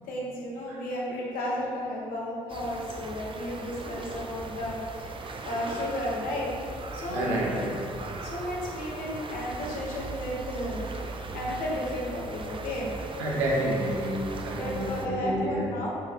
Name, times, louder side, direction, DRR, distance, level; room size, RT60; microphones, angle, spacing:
voice 1, 0.0-7.3 8.2-10.9 11.3-12.9 14.5-15.9, left 1 dB, 65° left, -4 dB, 1.4 m, -33 dB
sound 1, 2.5-15.1, right 3 dB, 35° right, 0.6 m, -39 dB
voice 2, 7.1-7.8 13.2-15.7, right 1 dB, 80° right, -4 dB, 1.2 m, -29 dB
5.9 x 4.6 x 3.8 m, 2.5 s
hypercardioid pair, 45°, 15 cm